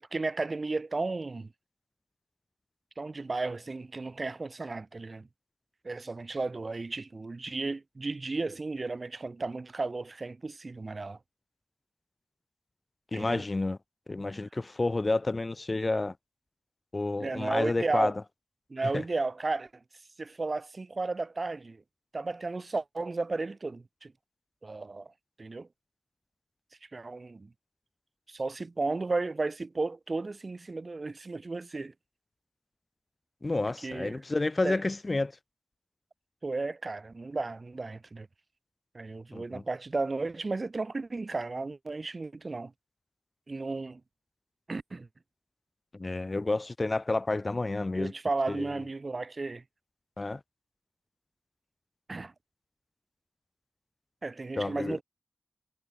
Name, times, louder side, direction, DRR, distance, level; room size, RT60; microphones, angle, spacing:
voice 1, 0.0-1.5 3.0-5.3 5.8-11.2 13.1-13.4 17.2-18.1 18.7-19.7 20.2-21.8 22.1-24.1 24.6-25.1 25.4-25.7 26.9-27.5 28.3-31.9 33.8-34.2 34.6-34.8 36.4-38.3 38.9-42.7 43.5-44.0 44.7-45.1 47.9-49.6 52.1-52.3 54.2-55.0, right 3 dB, 50° right, 0.5 m, -34 dB
voice 2, 13.1-13.8 14.1-16.1 16.9-18.1 18.9-19.0 33.4-35.3 39.3-39.6 45.9-48.1 48.5-48.7 50.2-50.4 54.6-55.0, left 2 dB, 40° left, 0.7 m, -30 dB
cardioid pair, 45°, 0 cm